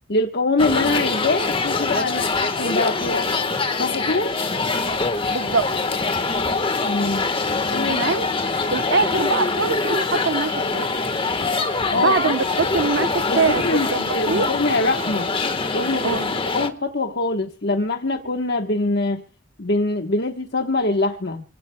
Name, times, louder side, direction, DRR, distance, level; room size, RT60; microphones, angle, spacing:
voice 1, 0.1-3.3 3.8-4.3 6.8-7.3 7.7-8.0 11.9-12.4 13.3-13.9 14.1-15.3 15.7-16.2 16.5-19.2 19.6-21.4, left 2 dB, 55° left, 1.2 m, -23 dB
sound 1, 0.6-16.7, left 3 dB, 25° left, 1.4 m, -24 dB
voice 2, 5.3-5.7 7.9-8.3 8.7-10.9 11.9-13.6 13.9-14.5 16.0-16.3, right 4 dB, 60° right, 0.9 m, -23 dB
28.5 x 15.5 x 2.2 m
head